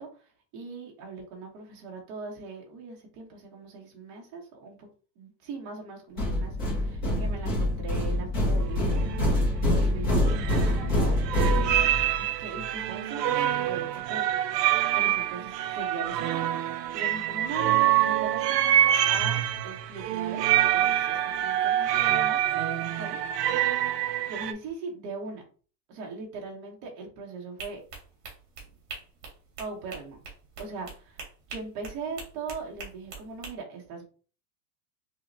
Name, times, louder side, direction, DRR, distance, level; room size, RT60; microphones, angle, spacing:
voice 1, 0.0-4.9 5.2-9.4 9.7-11.9 12.2-14.3 14.9-20.4 20.7-23.6 24.3-25.4 25.9-27.8 29.6-30.2 30.6-34.0, right 4 dB, 30° right, -1 dB, 0.9 m, -40 dB
sound 1, 6.2-12.2, left 1 dB, 15° left, 0.4 m, -25 dB
sound 2, 8.6-8.7 9.0-9.4 10.3-11.0 11.3-24.5, right 12 dB, 85° right, 0.6 m, -26 dB
sound 3, 27.6-33.5, right 4 dB, 50° right, 1.6 m, -43 dB
5.4 x 2.1 x 2.6 m, 0.39 s
supercardioid pair, 175°, 47 cm